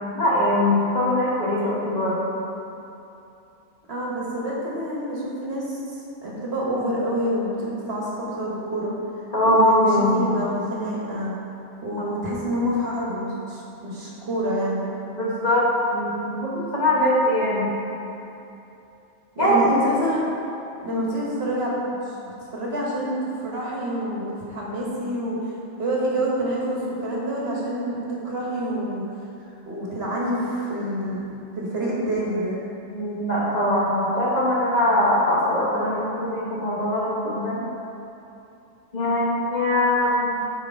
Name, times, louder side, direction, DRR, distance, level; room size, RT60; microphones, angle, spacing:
voice 1, 0.1-2.2 9.3-10.4 15.1-15.7 15.9-17.7 19.4-19.9 20.9-21.0 32.9-37.7 38.9-40.4, left 1 dB, 35° left, -7 dB, 1.3 m, -22 dB
voice 2, 3.9-5.8 6.2-8.9 9.4-11.3 11.8-14.9 19.3-20.3 20.8-21.9 22.2-25.4 25.8-28.0 28.2-29.0 29.7-31.3 31.5-32.6, right 1 dB, 60° right, -5 dB, 1.5 m, -27 dB
6.8 x 4.7 x 4.5 m, 2.8 s
omnidirectional pair, 1.2 m